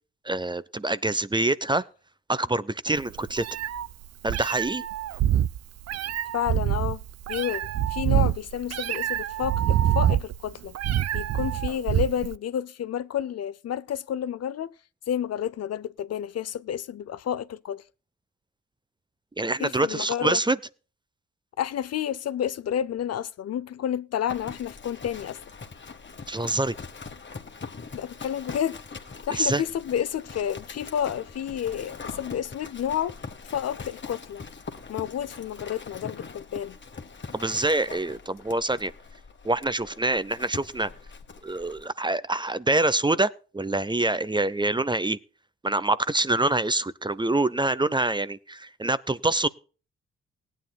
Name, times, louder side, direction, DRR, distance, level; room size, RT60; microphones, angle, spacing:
voice 1, 0.2-1.8 2.3-3.4 4.2-4.8 19.4-20.6 26.3-26.7 29.3-29.6 37.3-38.9 39.4-40.9 41.4-45.2 45.6-49.5, right 2 dB, 15° right, 0.7 m, -25 dB
Meow, 3.0-12.3, right 11 dB, 60° right, 0.5 m, -26 dB
voice 2, 6.3-7.0 7.3-10.8 11.1-14.8 15.1-17.8 19.6-20.4 21.6-25.4 27.9-28.8 29.3-33.2 33.5-34.4 34.9-36.8, left 9 dB, 60° left, 0.6 m, -30 dB
Livestock farm animals working animals, 24.3-41.9, left 5 dB, 40° left, 1.5 m, -42 dB
18.5 x 9.6 x 2.3 m
supercardioid pair, 45°, 29 cm